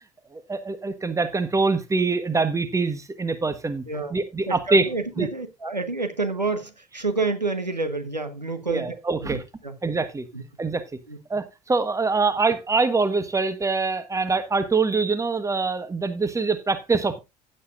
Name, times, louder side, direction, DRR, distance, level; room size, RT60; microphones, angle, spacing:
voice 1, 0.3-3.8 4.1-4.9 5.2-5.3 8.7-9.4 9.8-10.3 10.6-10.8 11.3-17.2, right 4 dB, 15° right, 1.4 m, -24 dB
voice 2, 3.9-4.2 4.5-8.9 9.2-9.8 10.3-10.4 11.1-11.2, right 3 dB, 90° right, 1.1 m, -29 dB
15.5 x 7.8 x 2.5 m
figure-of-eight pair, 60°, 21 cm